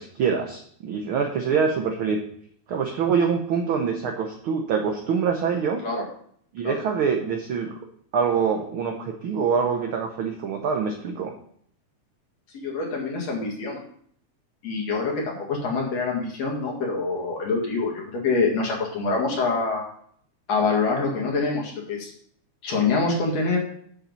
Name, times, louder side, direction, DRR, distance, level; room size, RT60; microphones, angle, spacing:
voice 1, 0.0-2.2 2.7-5.8 6.5-7.8 8.1-11.3, right 6 dB, 70° right, 3 dB, 1.2 m, -25 dB
voice 2, 12.5-13.8 14.6-19.9 20.5-22.1 22.6-23.6, left 4 dB, 60° left, -1 dB, 3.1 m, -25 dB
7.7 x 7.2 x 5.2 m, 0.63 s
omnidirectional pair, 3.5 m